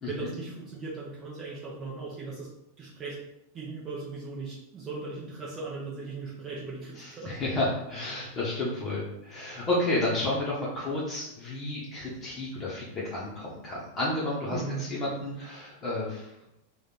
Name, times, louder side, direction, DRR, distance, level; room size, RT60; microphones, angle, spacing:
voice 1, 0.0-2.5 2.8-3.2 3.5-7.4 14.5-14.9, right 3 dB, 25° right, -5 dB, 0.8 m, -38 dB
voice 2, 6.9-16.3, left 2 dB, 25° left, -7 dB, 0.9 m, -31 dB
3.1 x 2.5 x 4.1 m, 0.86 s
figure-of-eight pair, 90°, 0 cm